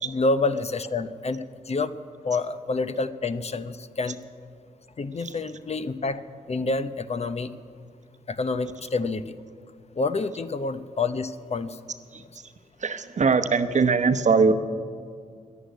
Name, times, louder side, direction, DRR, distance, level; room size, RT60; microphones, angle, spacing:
voice 1, 0.0-1.9 2.2-4.2 5.0-6.2 6.5-7.5 8.3-9.4 10.0-11.8, left 3 dB, 45° left, 12 dB, 0.8 m, -28 dB
voice 2, 12.1-12.5 12.8-14.5, right 5 dB, 55° right, 10 dB, 0.9 m, -22 dB
11.5 x 11.0 x 9.4 m, 2.2 s
cardioid pair, 50°, 15 cm